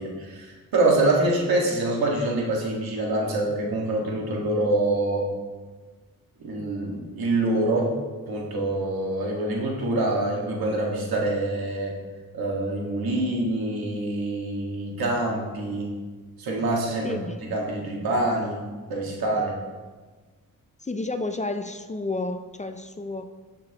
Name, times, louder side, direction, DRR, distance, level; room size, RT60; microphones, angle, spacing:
voice 1, 0.0-5.3 6.4-7.9 8.3-11.9 12.3-15.9 16.4-17.2 17.5-18.6 18.9-19.6, right 2 dB, 85° right, 1.8 m, -25 dB
voice 2, 17.0-17.6 20.8-23.3, left 2 dB, 20° left, 0.4 m, -31 dB
13.0 x 5.9 x 2.9 m
cardioid pair, 90°, 35 cm